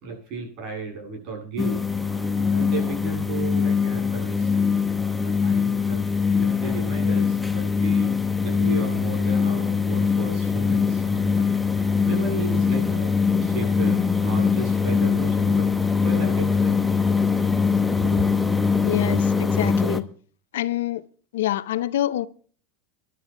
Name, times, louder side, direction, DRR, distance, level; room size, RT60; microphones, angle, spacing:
voice 1, 0.0-8.1 8.4-13.1 13.4-15.7 16.0-16.9 17.9-18.5, right 4 dB, 50° right, 8.0 m, -34 dB
sound 1, 1.6-20.0, left 5 dB, 5° left, 0.9 m, -22 dB
voice 2, 18.8-20.1 20.5-21.0 21.3-22.3, left 14 dB, 85° left, 0.6 m, -26 dB
27.5 x 11.5 x 2.2 m
supercardioid pair, 120°, 0 cm